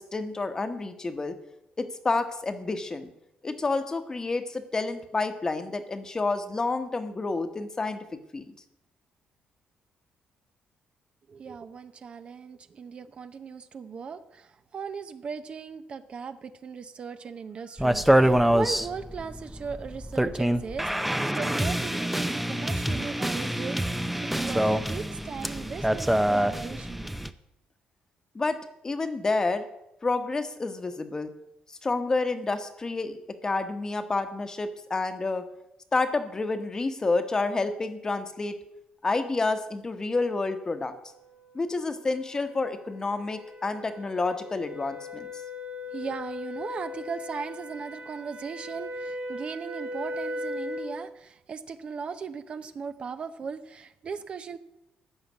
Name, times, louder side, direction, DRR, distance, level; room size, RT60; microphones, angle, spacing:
voice 1, 0.0-1.4 1.8-3.1 3.4-8.5 28.3-28.6 28.8-29.6 30.0-31.3 31.8-35.4 35.9-38.6 39.0-40.9 41.5-45.3, left 3 dB, 25° left, 9 dB, 1.2 m, -29 dB
voice 2, 11.3-27.1 45.9-54.6, right 5 dB, 40° right, 10 dB, 0.8 m, -38 dB
sound 1, 17.8-27.3, right 1 dB, 5° right, 0.6 m, -26 dB
sound 2, 41.0-51.0, left 2 dB, 80° right, 4.0 m, -39 dB
14.5 x 5.7 x 9.6 m, 0.89 s
cardioid pair, 125°, 3 cm